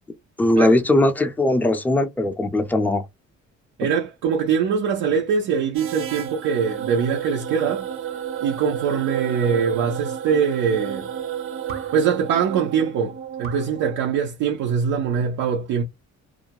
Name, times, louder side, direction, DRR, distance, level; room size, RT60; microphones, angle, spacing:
voice 1, 0.4-3.1 3.8-3.9, left 1 dB, 5° left, 0.4 m, -19 dB
voice 2, 3.8-7.9 8.4-11.1 11.9-15.8, right 7 dB, 85° right, 0.6 m, -23 dB
sound 1, 5.7-14.2, right 9 dB, 45° right, 0.6 m, -32 dB
2.4 x 2.2 x 2.8 m
cardioid pair, 90°, 30 cm